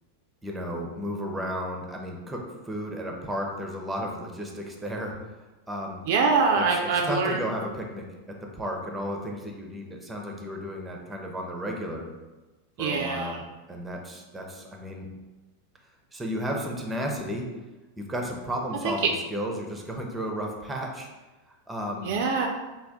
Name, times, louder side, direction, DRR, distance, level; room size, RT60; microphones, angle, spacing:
voice 1, 0.4-5.2 5.7-6.1 6.5-12.1 12.8-13.4 13.7-15.1 16.1-17.5 18.0-21.1 21.7-22.1, equal, 10° right, 1 dB, 0.6 m, -33 dB
voice 2, 6.1-7.4 12.8-13.4 18.8-19.1 22.0-22.5, right 4 dB, 50° right, 2 dB, 0.3 m, -24 dB
3.4 x 2.3 x 3.6 m, 1.2 s
figure-of-eight pair, 90°, 0 cm